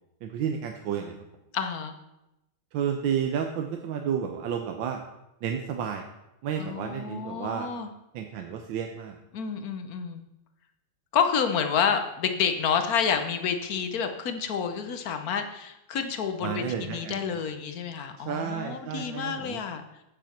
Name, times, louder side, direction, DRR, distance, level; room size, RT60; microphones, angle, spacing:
voice 1, 0.2-1.2 2.7-5.0 5.4-6.0 6.4-7.7 8.1-9.2 16.4-17.4 18.2-19.6, right 8 dB, 70° right, 4 dB, 1.4 m, -31 dB
voice 2, 1.5-1.9 6.6-7.9 9.3-10.2 11.1-19.8, left 7 dB, 55° left, 7 dB, 1.1 m, -29 dB
9.2 x 7.5 x 5.8 m, 0.90 s
omnidirectional pair, 2.4 m